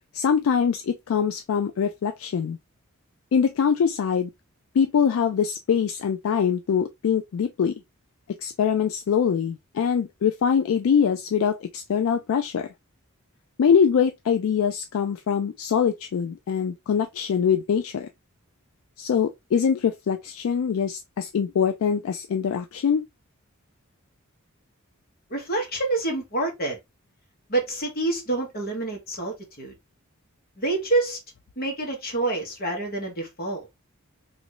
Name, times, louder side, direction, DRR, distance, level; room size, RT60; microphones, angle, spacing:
voice 1, 0.1-2.6 3.3-4.3 4.7-7.7 8.4-12.7 13.6-18.1 19.0-23.0, left 7 dB, 65° left, 0.3 m, -23 dB
voice 2, 25.3-26.8 27.5-29.7 30.6-31.2 31.6-33.7, right 2 dB, 45° left, 1.3 m, -27 dB
3.0 x 2.5 x 2.9 m
head